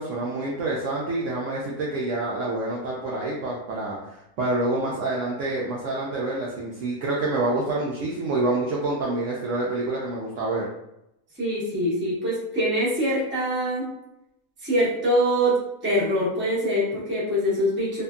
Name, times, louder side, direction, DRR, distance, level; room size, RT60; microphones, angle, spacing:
voice 1, 0.0-10.7, right 2 dB, 70° right, -4 dB, 0.8 m, -27 dB
voice 2, 11.4-13.9 14.6-18.0, equal, 10° right, -8 dB, 0.6 m, -24 dB
2.8 x 2.5 x 2.3 m, 0.82 s
omnidirectional pair, 1.6 m